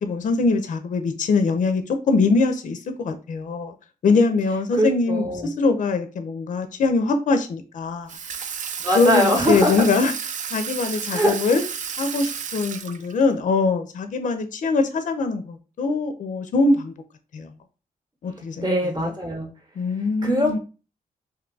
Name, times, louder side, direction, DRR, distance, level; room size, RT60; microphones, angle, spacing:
voice 1, 0.0-3.7 4.0-8.1 8.9-10.1 10.5-11.6 12.0-16.9 17.3-17.5 18.2-18.7 19.8-20.6, left 3 dB, 60° left, 0.5 m, -22 dB
voice 2, 4.7-5.5 8.8-9.8 11.1-11.4 18.6-19.5 20.2-20.6, equal, 25° right, 0.9 m, -22 dB
Water tap faucet / Sink (filling or washing), 8.1-13.3, right 7 dB, 55° right, 0.4 m, -32 dB
2.7 x 2.3 x 3.8 m
cardioid pair, 80°, 15 cm